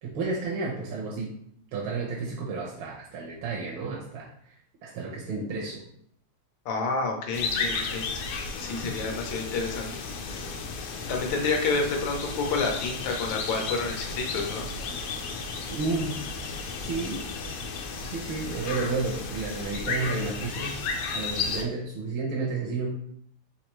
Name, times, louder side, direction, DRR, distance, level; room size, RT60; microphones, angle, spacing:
voice 1, 0.0-1.3 1.7-5.8 15.7-16.2 16.8-17.3 18.0-22.9, right 3 dB, 80° right, -3 dB, 1.6 m, -32 dB
voice 2, 6.6-8.1 8.6-9.9 10.3-10.4 11.1-14.7, left 4 dB, 70° left, 2 dB, 1.5 m, -29 dB
sound 1, 7.3-21.6, left 4 dB, 85° left, 1.5 m, -33 dB
4.4 x 3.5 x 3.1 m, 0.67 s
omnidirectional pair, 2.3 m